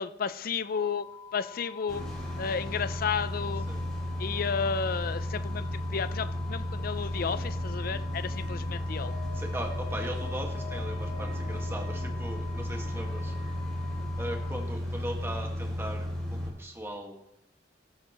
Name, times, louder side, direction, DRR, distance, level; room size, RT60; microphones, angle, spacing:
voice 1, 0.0-2.1 2.4-3.7 4.2-9.2, left 6 dB, 50° left, 14 dB, 0.5 m, -32 dB
sound 1, 0.7-14.6, left 8 dB, 75° left, 3.8 m, -48 dB
sound 2, 1.9-16.5, left 1 dB, 5° left, 4.6 m, -34 dB
sound 3, 7.1-14.0, left 3 dB, 50° right, 3.7 m, -46 dB
voice 2, 9.3-13.3 14.2-17.2, right 1 dB, 15° right, 2 dB, 1.7 m, -39 dB
15.5 x 12.5 x 3.0 m, 0.86 s
head